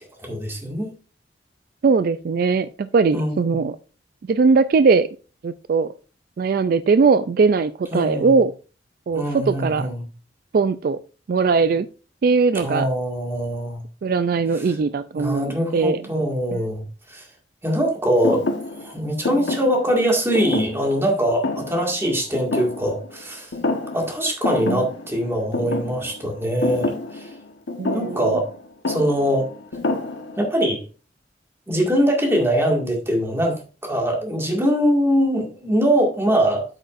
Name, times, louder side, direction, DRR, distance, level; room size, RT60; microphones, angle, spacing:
voice 1, 0.2-0.9 3.1-3.4 7.9-8.3 9.1-10.0 12.5-13.8 14.6-14.7 15.2-17.3 17.6-18.4 18.8-23.5 23.9-27.3 27.9-28.5 28.9-29.5 30.4-30.8 31.7-36.6, equal, 15° right, 1.9 m, -22 dB
voice 2, 1.8-3.8 4.3-5.1 5.4-5.9 6.4-8.5 9.1-9.9 10.5-11.0 11.3-11.9 12.2-12.9 14.0-16.0 16.5-16.6 24.7-24.8 27.8-28.3, right 4 dB, 55° right, 0.3 m, -20 dB
Thump thud, 18.2-23.2 23.5-24.1 24.4-30.6, left 2 dB, 90° left, 1.2 m, -28 dB
8.3 x 8.0 x 2.5 m
head